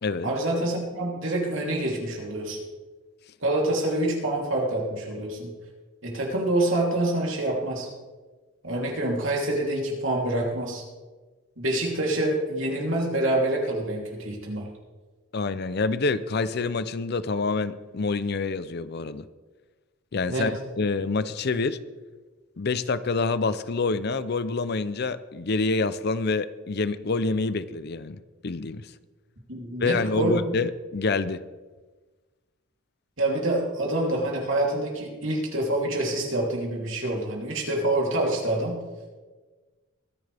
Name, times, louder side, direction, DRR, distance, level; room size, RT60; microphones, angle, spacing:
voice 1, 0.2-2.6 3.4-5.5 6.0-7.9 8.6-10.8 11.6-14.7 20.3-20.5 29.5-30.5 33.2-38.8, right 1 dB, 65° right, 3.2 m, -26 dB
voice 2, 15.3-19.2 20.1-20.5 20.8-21.8 22.6-28.9 29.8-31.4, left 3 dB, 50° left, 0.5 m, -27 dB
22.5 x 10.5 x 3.5 m
head